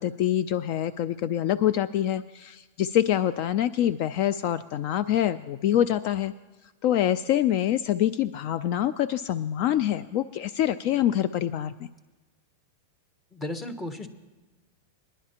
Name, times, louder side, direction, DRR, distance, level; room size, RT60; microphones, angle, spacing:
voice 1, 0.0-6.3 6.8-11.9, left 11 dB, 50° left, 15 dB, 0.3 m, -25 dB
voice 2, 13.3-14.1, left 1 dB, 15° left, 9 dB, 0.9 m, -34 dB
21.0 x 11.0 x 2.9 m, 1.2 s
supercardioid pair, 145°, 0 cm